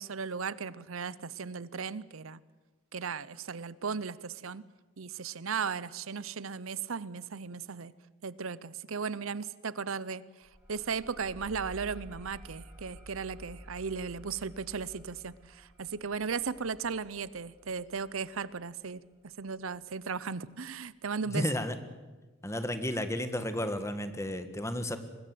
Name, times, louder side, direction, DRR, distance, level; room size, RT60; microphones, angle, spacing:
voice 1, 0.0-2.4 2.9-4.6 5.0-7.9 8.2-10.2 10.7-19.0 19.4-21.5, right 5 dB, 80° right, 19 dB, 0.7 m, -36 dB
sound 1, 10.4-19.6, equal, 10° right, 7.7 m, -52 dB
voice 2, 21.3-21.7 22.4-25.0, left 1 dB, 15° left, 10 dB, 1.6 m, -32 dB
24.0 x 20.0 x 7.8 m, 1.3 s
head